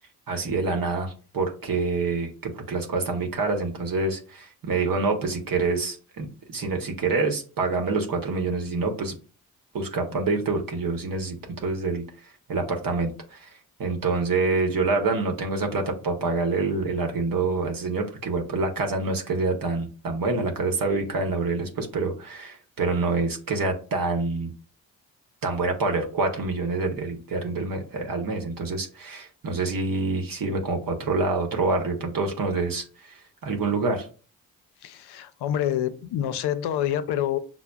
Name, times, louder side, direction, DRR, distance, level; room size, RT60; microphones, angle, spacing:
voice 1, 0.3-9.1 9.7-12.0 12.5-13.5 13.8-24.5 25.4-33.1 33.4-34.1, right 3 dB, 55° right, 3 dB, 0.9 m, -26 dB
voice 2, 34.8-37.4, left 11 dB, 75° left, 12 dB, 0.5 m, -27 dB
5.8 x 2.0 x 2.2 m, 0.38 s
supercardioid pair, 45°, 40 cm